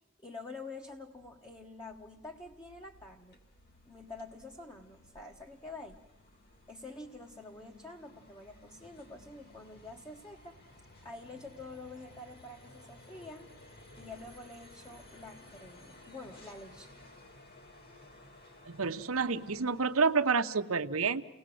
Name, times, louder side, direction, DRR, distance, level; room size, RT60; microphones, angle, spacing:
voice 1, 0.2-3.4 3.8-6.0 6.7-10.6 11.0-13.5 14.0-17.0, left 2 dB, 15° left, 1 dB, 1.3 m, -47 dB
sound 1, 0.8-20.6, left 1 dB, 50° left, 3.0 m, -57 dB
voice 2, 18.7-21.2, right 4 dB, 75° right, 8 dB, 1.0 m, -29 dB
30.0 x 19.0 x 7.8 m, 1.0 s
head